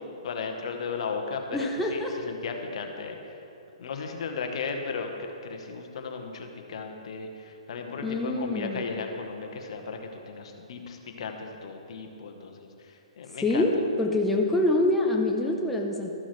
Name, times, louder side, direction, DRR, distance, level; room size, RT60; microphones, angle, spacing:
voice 1, 0.0-3.4 3.8-13.7, left 4 dB, 60° left, 4 dB, 1.0 m, -36 dB
voice 2, 1.5-2.1 8.0-8.8 13.4-13.7 14.0-16.1, left 2 dB, 5° left, -1 dB, 0.6 m, -25 dB
13.5 x 6.1 x 3.2 m, 2.9 s
hypercardioid pair, 140°, 3 cm